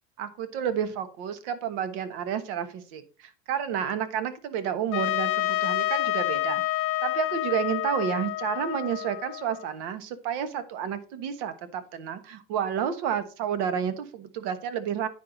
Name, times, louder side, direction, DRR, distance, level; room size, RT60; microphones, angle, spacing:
voice 1, 0.2-15.1, right 8 dB, 75° right, 11 dB, 1.2 m, -30 dB
Trumpet, 4.9-9.7, left 17 dB, 45° left, 0.5 m, -28 dB
9.6 x 5.5 x 3.9 m, 0.36 s
supercardioid pair, 130°, 29 cm